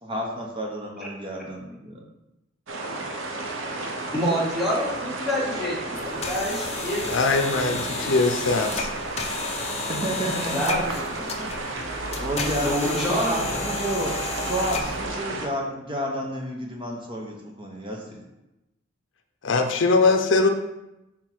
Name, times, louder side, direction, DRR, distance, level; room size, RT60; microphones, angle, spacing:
voice 1, 0.0-2.0 9.9-10.8 11.2-18.2, right 1 dB, 25° right, 0 dB, 0.9 m, -31 dB
sound 1, 2.7-15.5, right 2 dB, 85° right, 0.9 m, -32 dB
voice 2, 4.1-7.0 7.5-8.2 10.5-11.0 12.6-13.6, equal, ahead, -7 dB, 1.9 m, -27 dB
sound 2, 6.0-15.1, left 4 dB, 35° left, 0.8 m, -33 dB
voice 3, 7.1-8.9 19.4-20.5, left 3 dB, 70° left, 5 dB, 0.6 m, -21 dB
5.9 x 4.5 x 4.6 m, 0.95 s
head